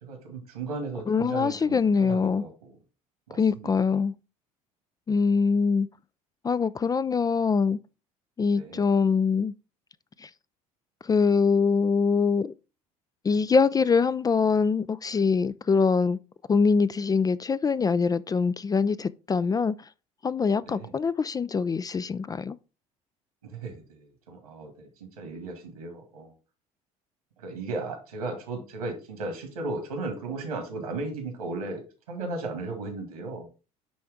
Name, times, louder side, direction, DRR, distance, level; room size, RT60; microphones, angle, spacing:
voice 1, 0.0-2.8 3.3-3.7 8.5-8.8 20.6-20.9 23.4-26.3 27.4-31.8 32.1-33.5, right 3 dB, 85° right, 2.0 m, -36 dB
voice 2, 1.1-2.4 3.4-4.1 5.1-5.9 6.4-7.8 8.4-9.5 10.2-10.3 11.0-12.5 13.2-16.2 16.5-19.8 20.2-22.6, left 5 dB, 20° left, 0.3 m, -23 dB
10.0 x 3.4 x 3.6 m
hypercardioid pair, 65°, 18 cm